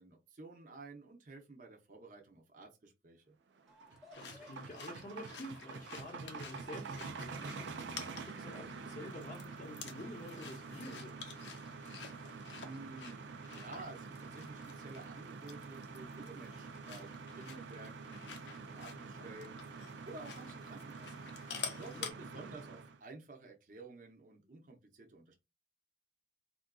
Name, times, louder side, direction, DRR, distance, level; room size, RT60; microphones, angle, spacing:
voice 1, 0.0-3.4 12.6-21.3 21.7-25.3, right 3 dB, 50° right, 0.6 m, -52 dB
sound 1, 3.6-23.0, right 4 dB, 85° right, 0.4 m, -47 dB
sound 2, 3.7-10.1, left 2 dB, ahead, 0.7 m, -65 dB
voice 2, 3.9-11.1 21.8-22.6, left 1 dB, 45° left, 0.6 m, -49 dB
sound 3, 4.1-22.1, left 6 dB, 90° left, 0.7 m, -51 dB
3.7 x 2.4 x 2.2 m
head